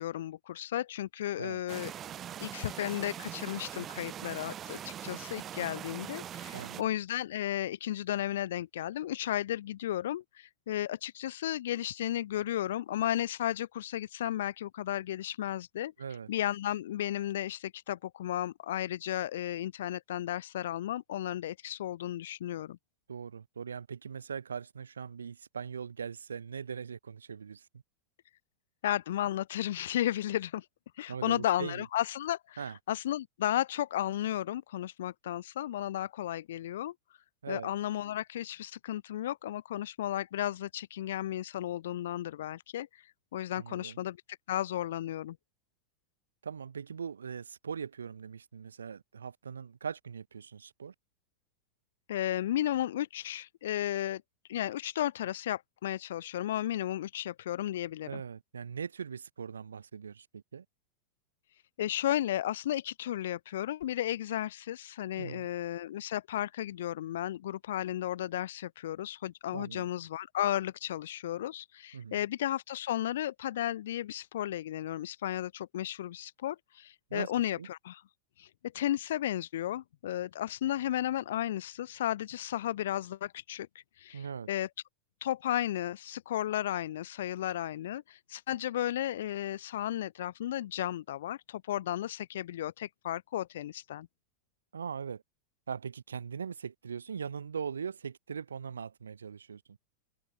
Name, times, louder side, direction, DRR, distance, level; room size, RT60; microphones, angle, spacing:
voice 1, 0.0-1.9 2.4-15.9 16.3-22.8 28.8-30.6 31.0-36.9 37.5-43.0 43.3-44.2 44.5-45.4 52.1-54.2 54.5-58.2 61.8-78.0 78.4-84.7 85.2-94.1, left 12 dB, 60° left, 0.5 m, -34 dB
sound 1, 1.7-6.8, right 10 dB, 25° right, 1.0 m, -42 dB
voice 2, 6.5-6.9 16.0-16.3 23.1-27.8 31.1-31.8 32.6-32.8 37.4-37.7 43.6-44.0 46.4-50.9 58.1-60.7 65.2-65.5 69.5-69.9 71.9-72.3 77.1-77.7 84.1-84.5 94.7-95.2 95.7-99.8, right 6 dB, 70° right, 0.5 m, -40 dB
figure-of-eight pair, 90°, 0 cm